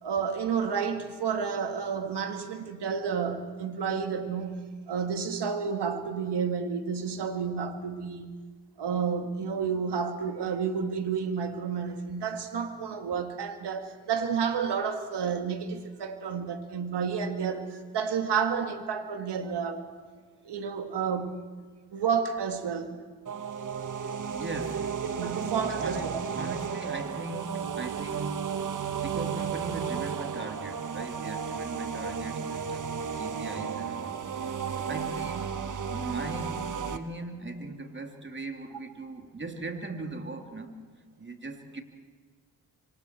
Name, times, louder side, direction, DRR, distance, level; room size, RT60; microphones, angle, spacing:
voice 1, 0.0-8.3 8.8-19.9 20.4-21.4 21.9-23.0 25.0-26.2 31.9-32.0, right 6 dB, 65° right, 2.2 m, -30 dB
sound 1, 23.3-37.0, right 7 dB, 45° right, 1.4 m, -34 dB
voice 2, 24.0-25.0 25.4-35.5 35.9-40.7 41.2-41.8, right 2 dB, 25° right, 3.0 m, -39 dB
28.0 x 25.0 x 4.6 m
supercardioid pair, 50°, 44 cm